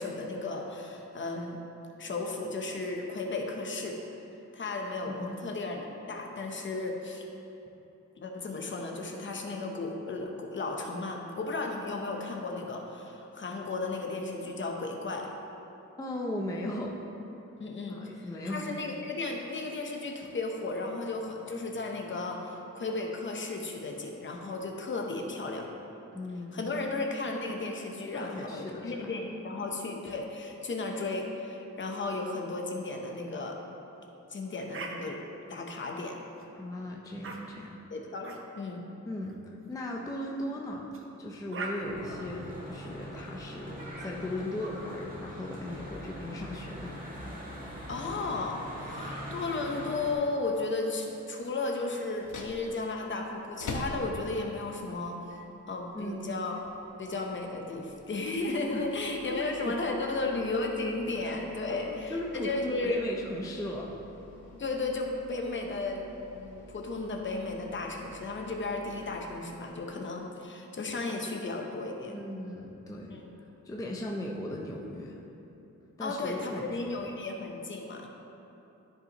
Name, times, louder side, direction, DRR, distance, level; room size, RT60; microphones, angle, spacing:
voice 1, 0.0-1.6 2.0-4.0 4.5-7.3 8.2-15.3 17.6-18.0 18.4-25.7 26.5-33.6 34.3-35.2 35.5-36.2 37.9-38.8 47.9-55.4 55.7-56.6 57.0-63.0 64.5-66.1 66.3-72.1 73.1-73.3 76.0-78.1, left 3 dB, 40° left, 1 dB, 0.8 m, -34 dB
voice 2, 5.1-5.4 16.0-17.0 17.9-18.6 26.1-26.7 28.1-29.0 36.5-37.8 39.1-40.9 41.2-46.9 55.9-56.4 58.7-58.8 59.3-59.8 60.1-60.2 61.7-64.0 72.1-73.1 73.6-75.2 76.0-77.0, left 1 dB, 10° left, -2 dB, 0.5 m, -37 dB
sound 1, 34.7-35.0 35.9-36.4 37.2-37.4 38.2-38.4 39.3-39.5 40.9-41.1 41.5-41.7, right 4 dB, 45° right, 0.7 m, -40 dB
Church bell / Traffic noise roadway noise, 41.8-50.1, equal, 30° right, 1.8 m, -42 dB
sound 2, 52.1-69.9, left 1 dB, 85° left, 1.0 m, -47 dB
13.0 x 5.2 x 2.9 m, 3.0 s
wide cardioid pair, 180°, 30 cm